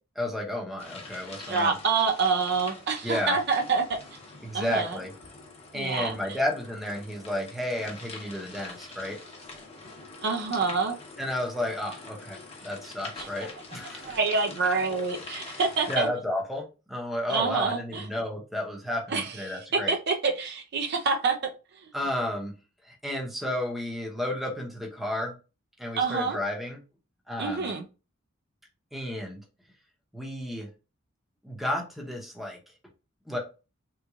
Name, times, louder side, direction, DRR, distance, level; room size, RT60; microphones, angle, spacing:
voice 1, 0.2-1.8 3.0-3.4 4.4-5.1 5.7-9.2 11.2-14.2 15.9-19.9 21.9-22.6 22.9-25.3 25.8-26.8 27.3-27.7 28.9-29.4 30.1-30.7 31.4-32.6 33.3-33.4, left 1 dB, ahead, 0.8 m, -32 dB
sound 1, 0.8-16.0, left 3 dB, 30° left, 0.8 m, -45 dB
voice 2, 1.5-4.0 4.5-5.0 5.7-6.4 10.2-11.0 13.2-13.3 14.0-16.1 17.3-18.1 19.1-21.4 21.8-21.9 26.0-26.4 27.4-27.8, right 4 dB, 55° right, 0.5 m, -27 dB
3.6 x 3.0 x 2.4 m
head